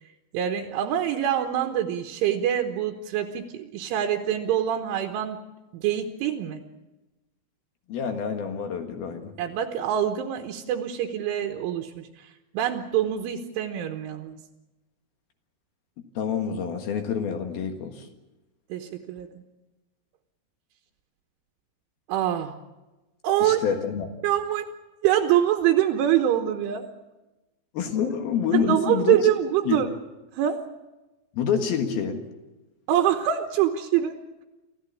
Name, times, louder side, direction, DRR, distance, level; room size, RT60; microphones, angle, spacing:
voice 1, 0.3-5.4 5.7-6.6 9.4-12.3 12.5-14.4 18.7-19.4 22.1-22.6 23.2-23.7 24.2-24.7 25.0-26.9 28.5-29.9 30.3-30.6 32.9-34.2, right 10 dB, 75° right, 4 dB, 3.5 m, -25 dB
voice 2, 7.9-9.3 16.1-18.0 23.4-24.1 27.7-29.2 29.7-29.8 31.3-32.2, left 7 dB, 60° left, 6 dB, 3.0 m, -27 dB
27.5 x 15.0 x 8.6 m, 1.1 s
omnidirectional pair, 5.9 m